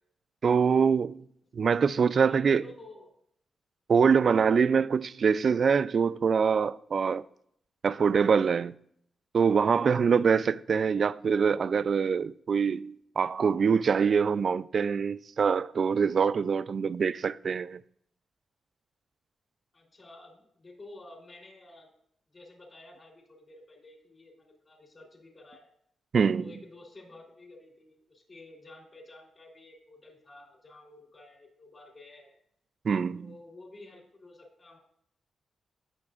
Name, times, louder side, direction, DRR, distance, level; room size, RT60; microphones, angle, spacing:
voice 1, 0.4-1.2 1.5-2.6 3.9-7.2 7.8-8.7 9.3-17.8 26.1-26.4 32.8-33.3, right 6 dB, 55° right, 0.3 m, -24 dB
voice 2, 2.2-3.1 19.7-21.9 22.3-25.7 26.3-32.4 33.2-34.8, left 2 dB, 40° left, 3.3 m, -51 dB
18.0 x 7.0 x 2.5 m
cardioid pair, 110°, 0 cm